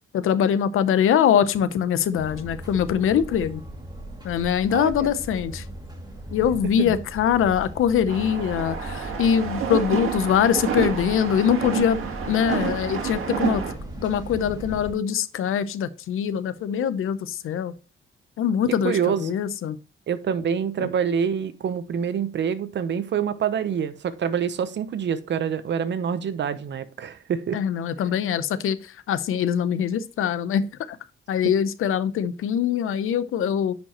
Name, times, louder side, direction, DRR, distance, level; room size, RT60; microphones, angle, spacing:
voice 1, 0.1-3.6 4.2-5.6 6.3-13.6 14.0-17.7 18.4-19.8 20.8-20.9 27.5-30.6 30.9-31.0 31.3-33.8, left 8 dB, 85° left, 0.7 m, -23 dB
sound 1, 2.1-14.9, right 1 dB, 20° right, 2.3 m, -38 dB
voice 2, 4.7-5.1 6.8-6.9 18.8-19.4 20.1-27.6, right 7 dB, 60° right, 0.8 m, -26 dB
sound 2, 8.1-13.7, right 7 dB, 90° right, 1.7 m, -29 dB
9.8 x 5.3 x 3.0 m
cardioid pair, 120°, 21 cm